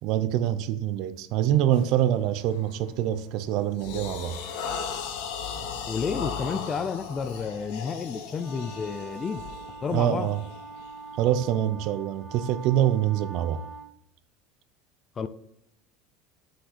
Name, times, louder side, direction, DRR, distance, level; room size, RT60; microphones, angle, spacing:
voice 1, 0.0-4.4 9.9-10.4 11.2-13.6, right 11 dB, 50° right, 0.6 m, -25 dB
sound 1, 1.7-2.0 2.5-2.8 3.2-11.3, left 6 dB, 65° left, 1.2 m, -37 dB
voice 2, 5.9-9.4 9.8-10.3 15.2-15.3, left 6 dB, 20° left, 0.4 m, -31 dB
sound 2, 8.4-13.9, right 4 dB, 5° left, 1.7 m, -43 dB
7.6 x 6.3 x 4.2 m
cardioid pair, 160°, 0 cm